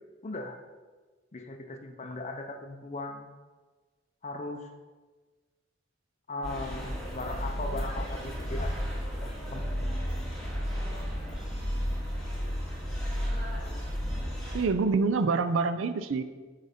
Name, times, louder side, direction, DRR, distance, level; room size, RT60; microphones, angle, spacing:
voice 1, 0.2-0.6 1.3-3.3 4.2-4.7 6.3-8.7 9.2-9.8, left 2 dB, 35° left, 4 dB, 0.5 m, -38 dB
sound 1, 6.4-14.6, equal, ahead, 1.8 m, -33 dB
voice 2, 14.5-16.2, right 4 dB, 75° right, 11 dB, 0.5 m, -26 dB
6.3 x 4.0 x 5.0 m, 1.3 s
head